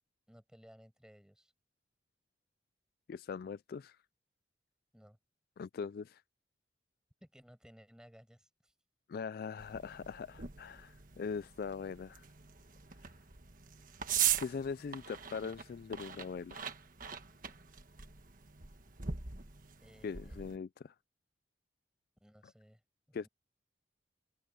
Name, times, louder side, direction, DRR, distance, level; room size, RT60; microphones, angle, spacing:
voice 1, 0.3-1.5 4.9-5.2 7.2-8.7 19.8-20.5 22.2-22.8 23.1-23.3, equal, 5° right, 6.8 m, -59 dB
voice 2, 3.1-4.0 5.6-6.2 9.1-12.2 14.4-16.7 20.0-20.9 23.1-23.3, left 5 dB, 55° left, 0.3 m, -41 dB
sound 1, 9.6-20.6, right 9 dB, 45° right, 1.5 m, -40 dB
open air
head